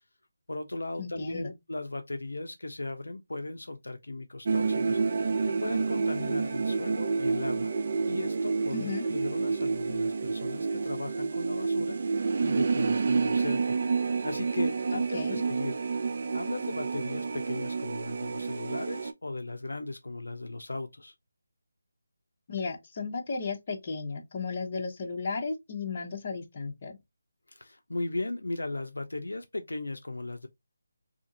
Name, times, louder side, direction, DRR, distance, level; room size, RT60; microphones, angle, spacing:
voice 1, 0.5-7.7 8.1-15.8 16.3-21.1 27.5-30.5, left 2 dB, 80° left, 0.4 m, -37 dB
voice 2, 1.0-1.5 8.7-9.0 14.9-15.4 22.5-27.0, left 4 dB, 35° left, 0.8 m, -34 dB
sound 1, 4.4-19.1, right 4 dB, 50° right, 0.4 m, -29 dB
2.8 x 2.5 x 2.6 m
figure-of-eight pair, 160°, 0 cm